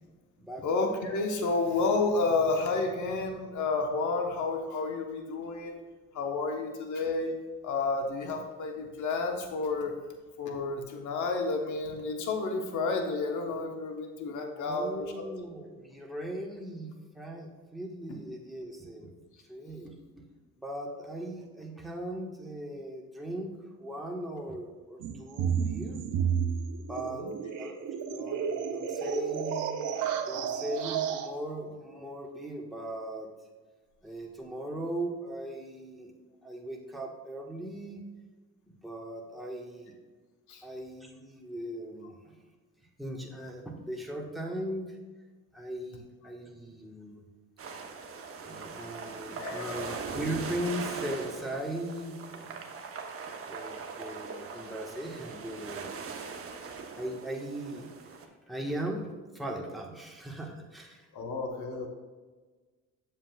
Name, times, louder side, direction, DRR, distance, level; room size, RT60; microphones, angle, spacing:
voice 1, 0.6-5.8 6.1-7.3 7.6-10.0 10.4-15.3 27.0-27.3 40.5-40.6 49.4-50.1 61.1-61.9, left 3 dB, 75° left, 3 dB, 1.1 m, -31 dB
voice 2, 14.6-19.1 19.5-19.9 20.6-23.5 23.8-26.0 26.9-27.2 27.6-27.8 28.1-29.8 30.3-33.3 34.0-36.1 36.4-38.0 38.7-39.9 40.6-42.4 43.0-44.9 45.5-47.2 48.4-52.6 53.4-55.9 57.0-61.0, right 1 dB, ahead, -2 dB, 1.3 m, -38 dB
sound 1, 25.0-31.3, right 7 dB, 85° right, 0.7 m, -32 dB
sound 2, 47.6-58.2, right 5 dB, 50° right, 0.9 m, -41 dB
7.4 x 7.4 x 2.3 m, 1.4 s
cardioid pair, 90°, 30 cm